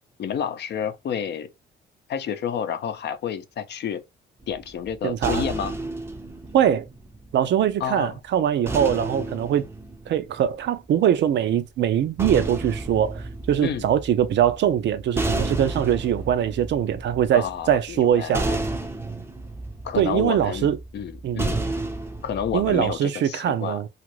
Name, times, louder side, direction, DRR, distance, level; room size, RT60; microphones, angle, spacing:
voice 1, 0.2-1.5 2.1-4.0 4.5-5.7 7.8-8.2 13.6-13.9 17.3-18.6 19.8-21.6 22.2-23.8, left 8 dB, 60° left, 0.6 m, -30 dB
sound 1, 4.4-7.7 8.7-10.9 11.9-23.0, right 2 dB, 10° right, 0.5 m, -32 dB
voice 2, 5.0-5.4 6.5-6.9 7.3-9.6 10.1-18.4 20.0-20.8 21.2-21.5 22.5-23.9, right 10 dB, 65° right, 0.5 m, -22 dB
2.5 x 2.5 x 3.0 m
cardioid pair, 90°, 20 cm